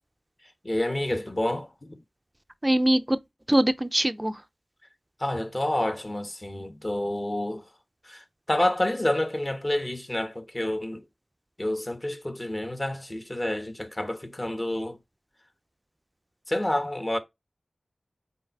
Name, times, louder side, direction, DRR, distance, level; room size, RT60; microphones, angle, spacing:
voice 1, 0.6-1.7 5.2-7.6 8.1-11.0 11.6-15.0 16.5-17.2, left 1 dB, 30° left, 1.3 m, -28 dB
voice 2, 2.6-3.2 3.5-4.3, right 1 dB, 20° right, 0.6 m, -22 dB
5.5 x 4.3 x 4.8 m
wide cardioid pair, 70°, 0 cm